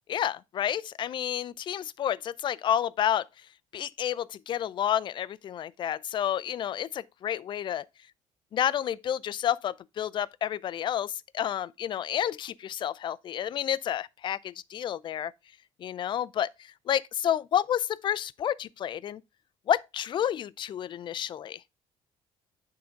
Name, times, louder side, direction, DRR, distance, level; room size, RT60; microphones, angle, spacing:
voice 1, 0.1-3.3 3.7-7.9 8.5-15.3 15.8-16.5 16.9-19.2 19.7-21.6, left 10 dB, 40° left, 0.5 m, -30 dB
9.6 x 3.8 x 5.1 m
cardioid pair, 130°, 12 cm